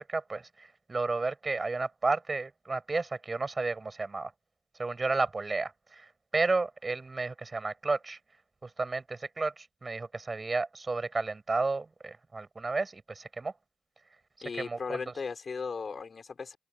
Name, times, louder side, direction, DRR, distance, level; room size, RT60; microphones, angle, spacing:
voice 1, 0.0-4.3 4.8-8.2 8.6-13.5 14.6-15.0, right 3 dB, 25° right, 6.6 m, -32 dB
voice 2, 14.4-16.6, left 5 dB, 40° left, 5.8 m, -37 dB
open air
cardioid pair, 90°, 0 cm